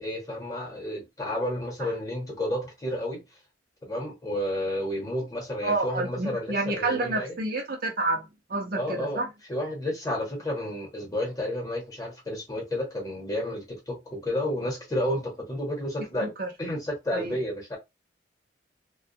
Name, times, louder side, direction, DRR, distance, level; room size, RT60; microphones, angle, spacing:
voice 1, 0.0-3.2 3.8-7.4 8.8-9.2 9.5-16.3 16.6-17.8, left 1 dB, 20° left, 1.0 m, -31 dB
voice 2, 5.6-9.3 16.2-16.5 17.1-17.4, right 2 dB, 50° right, 0.6 m, -29 dB
2.3 x 2.2 x 2.6 m
head